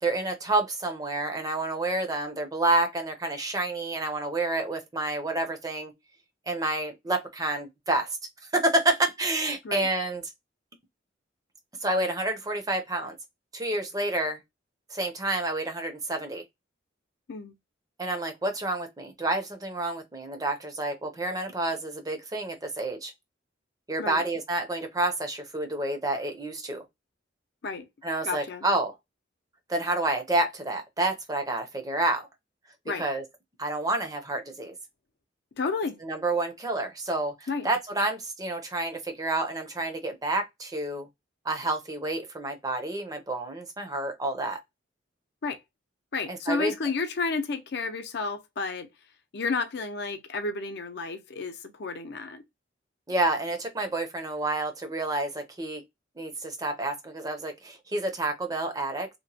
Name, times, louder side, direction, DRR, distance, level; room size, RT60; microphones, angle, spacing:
voice 1, 0.0-5.9 6.5-8.2 8.5-10.2 11.8-13.2 13.5-14.4 14.9-16.4 18.0-23.1 23.9-26.8 28.0-28.9 29.7-32.3 33.0-33.2 33.6-34.7 36.0-41.1 41.4-44.6 46.3-46.7 53.1-55.8 56.2-59.1, right 2 dB, 20° right, 0.5 m, -29 dB
voice 2, 28.2-28.7 32.9-33.0 35.6-36.0 37.5-37.7 45.4-45.6 46.1-48.9 49.3-52.4, left 4 dB, 60° left, 0.5 m, -31 dB
2.9 x 2.1 x 2.6 m
head